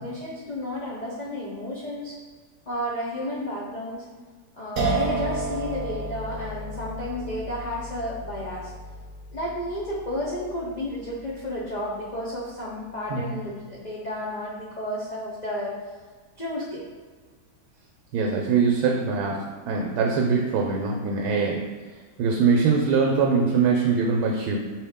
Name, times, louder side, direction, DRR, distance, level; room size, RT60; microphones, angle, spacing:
voice 1, 0.0-2.2 2.7-4.0 4.5-8.7 9.3-15.8 16.4-16.9, left 1 dB, 70° left, -6 dB, 0.4 m, -32 dB
sound 1, 4.8-11.7, right 2 dB, 45° right, 0.8 m, -32 dB
voice 2, 13.1-13.4 18.1-19.4 19.7-21.6 22.2-24.6, right 5 dB, 75° right, 0 dB, 1.1 m, -22 dB
4.5 x 3.1 x 3.5 m, 1.5 s
omnidirectional pair, 1.7 m